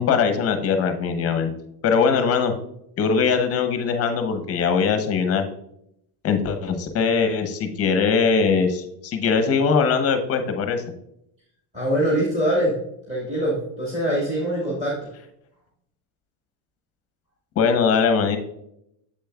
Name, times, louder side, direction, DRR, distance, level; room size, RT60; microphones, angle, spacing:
voice 1, 0.0-1.5 1.8-2.5 3.0-5.5 6.2-10.8 17.6-18.4, left 5 dB, 30° left, 7 dB, 0.7 m, -21 dB
voice 2, 11.7-12.7 13.1-15.0, right 1 dB, 15° right, -4 dB, 1.5 m, -23 dB
7.6 x 6.9 x 2.3 m, 0.76 s
cardioid pair, 155°, 47 cm